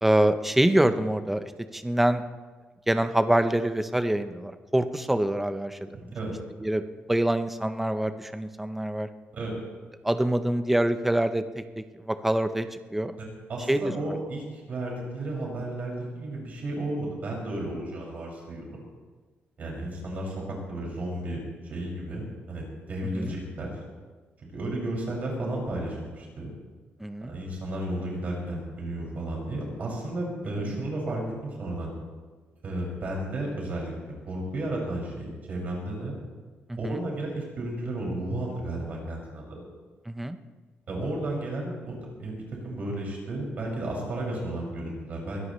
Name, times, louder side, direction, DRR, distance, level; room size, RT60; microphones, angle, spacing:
voice 1, 0.0-1.4 1.7-2.2 2.9-6.1 6.6-6.8 7.1-9.1 10.0-11.4 11.8-13.1 13.7-13.9 23.1-23.3 27.0-27.3 30.6-30.7 36.8-37.0 40.1-40.4, right 1 dB, 5° right, 9 dB, 0.7 m, -25 dB
voice 2, 5.9-6.3 9.3-9.5 13.5-18.9 19.6-23.7 24.5-26.5 27.3-31.2 31.6-31.9 32.6-33.9 34.3-36.1 36.8-39.6 40.9-45.4, right 1 dB, 40° right, -2 dB, 5.9 m, -33 dB
23.0 x 16.5 x 3.2 m, 1.4 s
cardioid pair, 175°, 4 cm